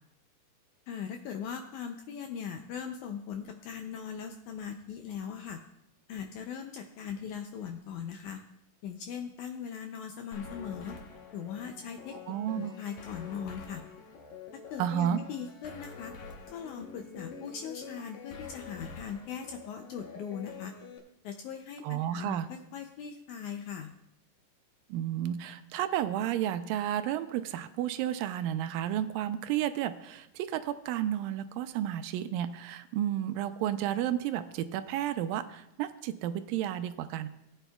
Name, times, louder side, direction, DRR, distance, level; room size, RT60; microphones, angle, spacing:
voice 1, 0.9-5.6 6.1-8.4 8.8-10.9 11.3-12.2 12.5-13.8 14.7-16.1 16.5-20.7 21.2-23.9, left 7 dB, 90° left, 5 dB, 1.7 m, -40 dB
sound 1, 10.3-21.0, left 5 dB, 65° left, 2.2 m, -47 dB
voice 2, 12.3-12.8 14.8-15.2 21.8-22.5 24.9-37.3, right 11 dB, 80° right, 11 dB, 2.2 m, -32 dB
18.0 x 8.9 x 2.3 m, 0.82 s
omnidirectional pair, 4.1 m